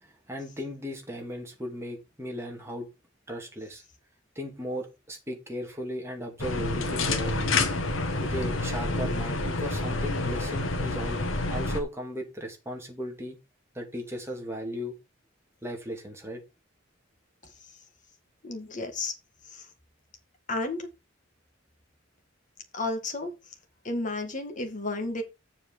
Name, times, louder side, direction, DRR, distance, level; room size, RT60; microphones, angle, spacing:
voice 1, 0.0-2.9 3.3-3.8 4.4-7.6 8.2-11.2 11.5-13.4 13.7-14.9 15.6-16.4, equal, 15° right, 2.5 m, -36 dB
sound 1, 6.4-11.8, left 2 dB, 85° left, 1.5 m, -28 dB
voice 2, 18.4-19.1 19.5-19.6 20.5-20.9 22.7-23.3 23.8-25.2, left 2 dB, 40° left, 2.0 m, -32 dB
7.3 x 4.8 x 6.3 m
head